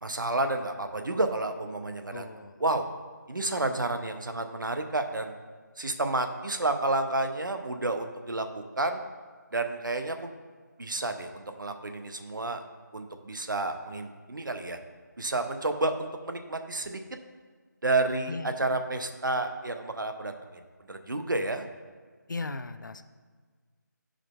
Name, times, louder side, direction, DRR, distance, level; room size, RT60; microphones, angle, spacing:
voice 1, 0.0-2.2 2.6-2.9 3.3-5.3 5.8-9.0 9.5-10.3 10.8-12.6 12.9-14.8 15.2-17.0 17.8-20.6 20.9-21.6, right 2 dB, 80° right, 6 dB, 0.6 m, -30 dB
voice 2, 2.1-2.6 18.3-18.5 22.3-23.0, left 3 dB, 75° left, 10 dB, 0.4 m, -37 dB
11.0 x 5.0 x 2.2 m, 1.5 s
figure-of-eight pair, 160°, 10 cm